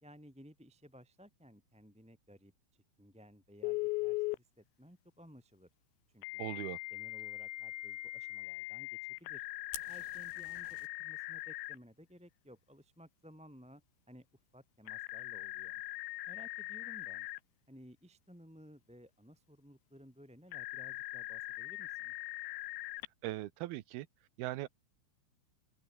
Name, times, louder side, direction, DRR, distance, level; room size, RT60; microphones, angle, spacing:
voice 1, 0.0-5.7 6.1-6.5 6.9-8.9 9.2-9.4 9.8-13.8 14.1-14.2 14.5-15.8 16.3-17.3 17.7-22.1, equal, ahead, 3.1 m, -58 dB
Telephone, 3.6-4.4 6.2-11.8 14.9-17.4 20.5-23.1, left 23 dB, 80° left, 2.6 m, -40 dB
voice 2, 6.4-6.8 23.2-24.1 24.4-24.7, right 16 dB, 75° right, 2.3 m, -39 dB
Fire, 9.7-10.9, left 8 dB, 60° left, 5.4 m, -48 dB
omnidirectional pair, 5.6 m